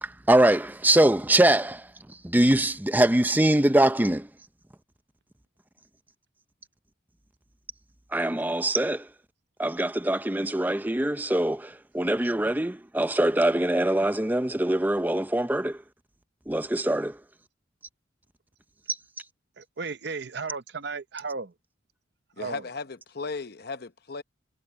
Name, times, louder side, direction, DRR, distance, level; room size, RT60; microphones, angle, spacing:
voice 1, 0.0-4.3 8.1-9.1 9.6-15.8 16.5-17.2 18.9-19.0, right 1 dB, 10° right, 0.6 m, -23 dB
voice 2, 19.6-21.5 22.4-22.6, right 4 dB, 55° right, 0.7 m, -34 dB
voice 3, 22.4-24.2, left 4 dB, 55° left, 0.9 m, -36 dB
head